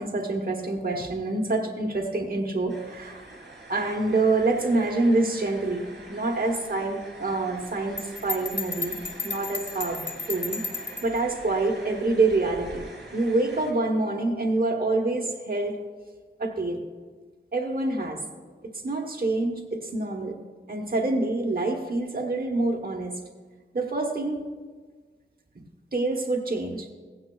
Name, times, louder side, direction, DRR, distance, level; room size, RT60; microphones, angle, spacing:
voice 1, 0.0-3.2 3.7-10.6 11.0-12.8 13.1-15.8 16.4-16.8 17.5-18.2 18.6-20.4 20.7-23.2 23.7-24.4 25.5-25.7 25.9-26.9, right 2 dB, 50° right, 2 dB, 1.1 m, -26 dB
sound 1, 2.7-13.7, right 2 dB, 65° right, 3.0 m, -45 dB
Bell, 8.0-11.2, left 3 dB, 65° left, 1.5 m, -33 dB
16.0 x 9.6 x 2.3 m, 1.5 s
wide cardioid pair, 45°, 20 cm